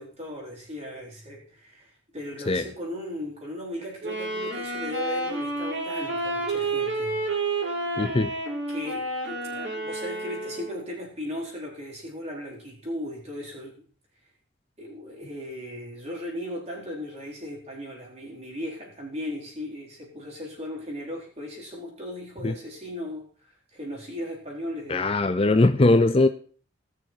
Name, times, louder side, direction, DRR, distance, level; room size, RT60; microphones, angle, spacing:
voice 1, 0.0-7.2 7.6-7.7 8.7-13.8 14.8-25.1, left 1 dB, 35° right, 4.1 m, -37 dB
Wind instrument woodwind instrument, 4.0-10.9, right 2 dB, 60° right, 3.7 m, -30 dB
voice 2, 7.9-8.3 22.4-22.5 24.9-26.3, left 2 dB, 30° left, 0.5 m, -20 dB
18.5 x 6.5 x 4.5 m
head